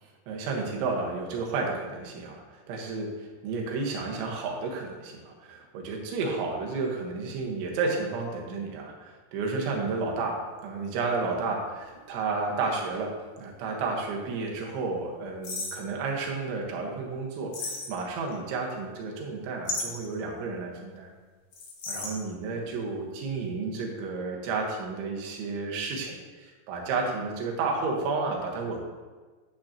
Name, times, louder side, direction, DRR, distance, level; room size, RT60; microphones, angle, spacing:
voice 1, 0.3-13.1 13.4-21.1 21.9-28.9, right 4 dB, 85° right, 0 dB, 3.8 m, -32 dB
sound 1, 9.8-9.9 10.8-13.5 13.8-13.9 15.4-15.9 17.5-18.3 19.6-20.1 21.5-22.2, left 3 dB, 60° left, 1.5 m, -35 dB
10.5 x 9.1 x 2.9 m, 1.4 s
omnidirectional pair, 5.2 m